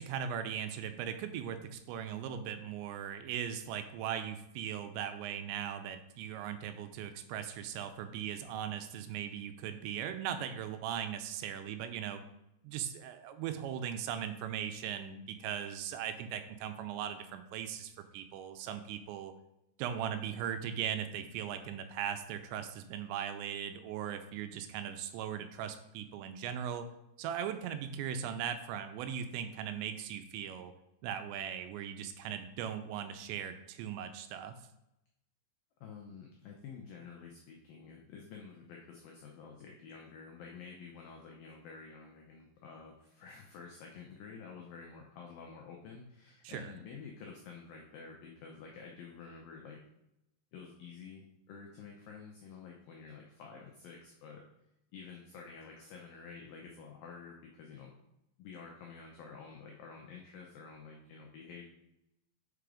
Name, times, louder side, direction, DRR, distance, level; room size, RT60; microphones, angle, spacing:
voice 1, 0.0-12.2 12.6-19.3 19.8-26.9 27.2-30.7 31.0-34.6 46.4-46.7, right 9 dB, 80° right, 8 dB, 2.7 m, -39 dB
voice 2, 35.8-49.8 50.5-54.4 54.9-57.9 58.4-61.7, left 5 dB, 90° left, 0 dB, 2.0 m, -50 dB
5.8 x 5.3 x 4.9 m, 0.87 s
omnidirectional pair, 5.3 m